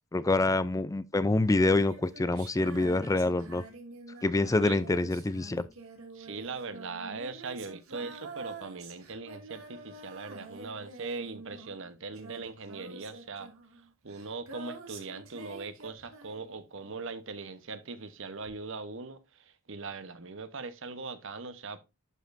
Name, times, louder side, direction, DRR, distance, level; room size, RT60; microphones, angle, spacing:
voice 1, 0.1-3.6 4.2-5.7, left 2 dB, 15° left, 0.3 m, -26 dB
Female singing, 1.5-16.9 18.5-18.6, right 3 dB, 80° right, 2.2 m, -47 dB
voice 2, 6.1-13.5 14.0-21.8, right 4 dB, 60° right, 0.9 m, -40 dB
11.0 x 5.2 x 2.5 m
head